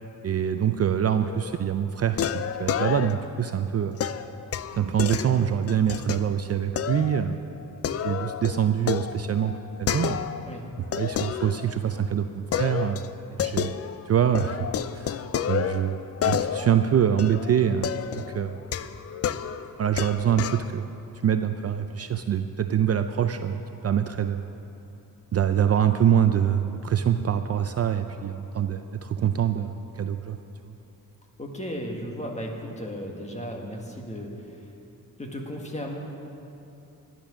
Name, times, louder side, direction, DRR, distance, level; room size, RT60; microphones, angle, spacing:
voice 1, 0.2-4.0 4.7-7.4 8.0-10.3 10.9-13.1 13.3-13.8 14.1-14.7 14.9-15.2 15.5-18.6 19.8-20.9 21.2-24.4 25.3-30.4, right 9 dB, 45° right, 8 dB, 0.5 m, -25 dB
sound 1, 1.2-1.6 2.2-3.4 4.0-6.2 6.8-7.2 7.6-10.5 10.9-12.0 12.5-14.1 14.3-20.7, left 9 dB, 45° left, 0.4 m, -30 dB
voice 2, 31.4-34.7 35.2-36.0, equal, 20° left, 1 dB, 1.7 m, -35 dB
13.0 x 10.5 x 6.3 m, 2.9 s
cardioid pair, 120°, 35 cm